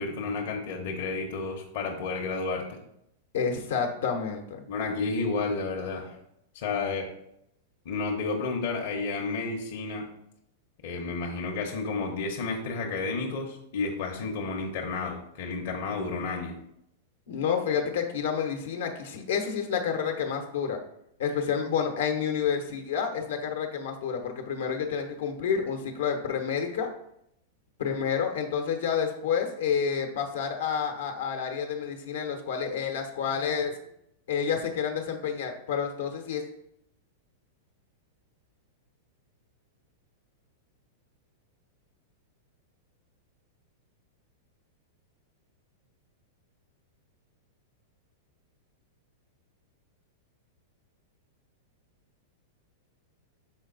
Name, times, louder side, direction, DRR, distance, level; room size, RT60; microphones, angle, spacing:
voice 1, 0.0-2.8 4.7-6.2 6.5-7.1 7.8-10.1 10.8-16.6, left 4 dB, 60° left, 1 dB, 1.0 m, -31 dB
voice 2, 3.3-4.6 17.3-20.8 21.2-26.9 27.8-33.7 34.3-36.4, left 7 dB, 80° left, 3 dB, 1.1 m, -29 dB
6.2 x 4.1 x 3.9 m, 0.78 s
hypercardioid pair, 125°, 0 cm